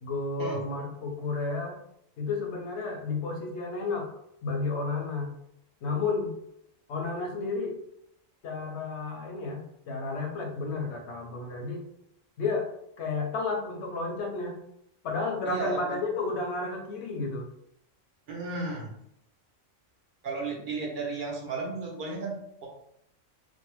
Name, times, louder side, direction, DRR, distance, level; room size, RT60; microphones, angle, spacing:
voice 1, 0.0-1.8 2.2-4.1 4.4-5.3 5.8-6.3 6.9-7.8 8.4-11.9 12.4-12.7 13.0-14.6 15.0-17.5, left 3 dB, 65° left, 2 dB, 0.8 m, -32 dB
voice 2, 15.5-15.8 18.3-18.9 20.2-22.3 22.6-22.7, right 3 dB, 60° right, -1 dB, 0.5 m, -33 dB
2.6 x 2.1 x 3.0 m, 0.76 s
omnidirectional pair, 1.4 m